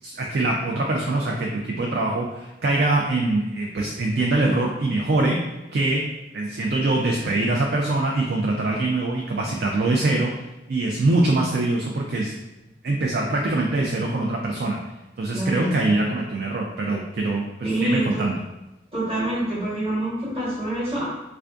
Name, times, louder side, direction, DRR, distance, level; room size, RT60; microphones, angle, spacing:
voice 1, 0.0-5.4 5.7-6.0 6.3-10.3 10.7-12.3 12.8-14.8 15.2-18.4, right 2 dB, 60° right, 0 dB, 0.4 m, -23 dB
voice 2, 15.3-16.0 17.6-18.3 18.9-21.0, right 1 dB, 30° right, -9 dB, 1.1 m, -26 dB
3.3 x 2.5 x 3.4 m, 1.0 s
head